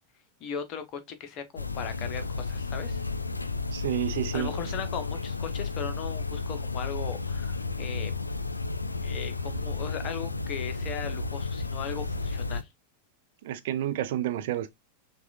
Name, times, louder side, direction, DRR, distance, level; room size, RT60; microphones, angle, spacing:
voice 1, 0.4-3.0 4.3-8.1 9.0-12.6, left 7 dB, 40° left, 0.9 m, -38 dB
sound 1, 1.6-12.6, left 4 dB, 80° left, 0.3 m, -32 dB
voice 2, 3.7-4.5 13.4-14.7, right 12 dB, 55° right, 0.5 m, -30 dB
5.8 x 2.4 x 2.4 m
figure-of-eight pair, 90°, 0 cm